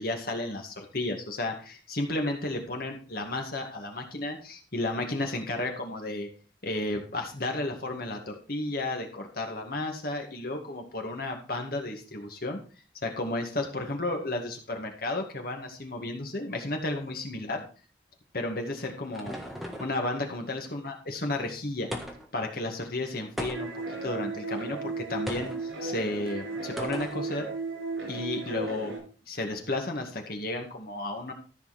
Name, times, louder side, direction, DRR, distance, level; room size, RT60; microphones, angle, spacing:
voice 1, 0.0-6.3 6.6-12.6 13.0-17.6 18.3-19.3 19.8-21.9 22.3-23.7 24.0-27.5 28.1-29.0 29.3-31.3, left 2 dB, 50° left, 3 dB, 2.0 m, -33 dB
sound 1, 18.7-20.0 21.9-22.4 23.4-23.9 25.3-25.6 26.8-27.2, equal, ahead, 1.5 m, -37 dB
sound 2, 23.5-29.0, right 3 dB, 90° right, 4.9 m, -35 dB
14.0 x 5.7 x 4.2 m, 0.38 s
head